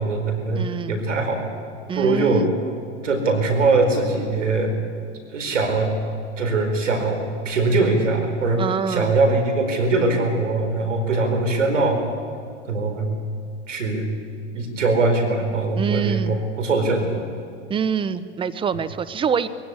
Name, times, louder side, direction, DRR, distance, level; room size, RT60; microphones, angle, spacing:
voice 1, 0.0-1.4 1.9-2.5 3.0-4.7 5.3-5.9 6.4-12.0 12.7-13.1 13.7-14.1 14.5-17.3, right 3 dB, 85° right, 6 dB, 4.5 m, -21 dB
voice 2, 0.5-1.0 1.9-2.5 8.6-9.2 15.7-16.3 17.7-19.5, right 7 dB, 15° right, 13 dB, 0.8 m, -25 dB
21.5 x 16.5 x 9.8 m, 2.4 s
hypercardioid pair, 110°, 36 cm